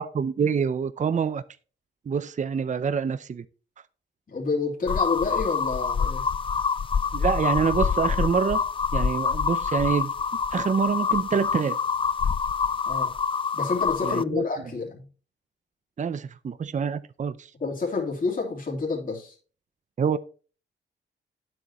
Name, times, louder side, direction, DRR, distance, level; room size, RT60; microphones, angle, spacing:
voice 1, 0.0-1.4 2.1-3.5 7.1-8.6 8.9-10.1 10.5-11.8 14.0-14.4 16.0-17.5 20.0-20.2, right 6 dB, 40° right, 0.6 m, -26 dB
voice 2, 4.3-6.3 12.8-13.1 13.5-15.1 17.6-19.4, left 4 dB, 45° left, 3.2 m, -28 dB
sound 1, 4.9-14.2, left 6 dB, 30° left, 0.3 m, -26 dB
9.9 x 8.0 x 3.0 m
cardioid pair, 80°, 19 cm